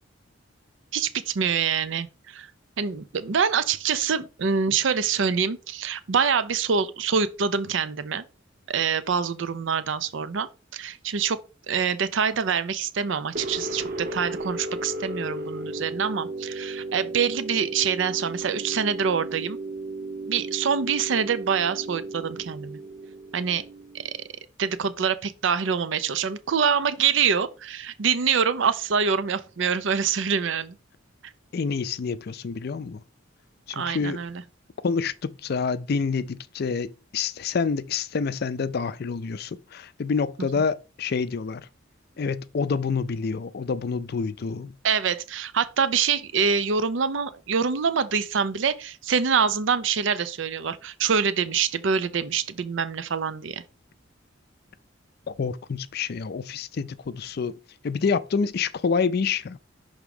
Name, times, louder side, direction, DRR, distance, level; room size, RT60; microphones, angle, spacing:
voice 1, 0.9-2.5 2.8-8.2 8.7-11.4 11.7-19.6 20.3-22.8 23.3-23.6 23.9-24.2 24.6-30.8 33.7-34.4 40.6-40.7 44.8-53.6, right 6 dB, 70° right, 0.5 m, -25 dB
sound 1, 13.3-24.2, right 2 dB, 50° right, 0.9 m, -35 dB
voice 2, 31.5-33.0 33.7-34.2 34.8-41.7 42.2-44.7 55.3-57.6 57.8-59.6, left 5 dB, 55° left, 0.4 m, -27 dB
6.0 x 3.6 x 5.2 m
head